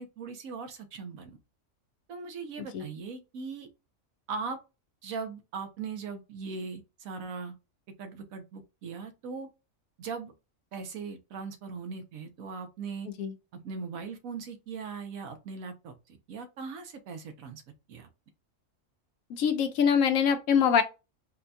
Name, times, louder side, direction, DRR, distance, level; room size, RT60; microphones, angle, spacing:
voice 1, 0.0-1.4 2.1-3.7 4.3-4.6 5.0-7.5 8.0-9.5 10.0-10.3 10.7-13.1 13.5-15.9 16.3-17.6 17.9-18.1, right 5 dB, 80° right, 1.1 m, -39 dB
voice 2, 19.4-20.8, left 7 dB, 80° left, 1.0 m, -24 dB
4.2 x 2.2 x 2.6 m
omnidirectional pair, 1.4 m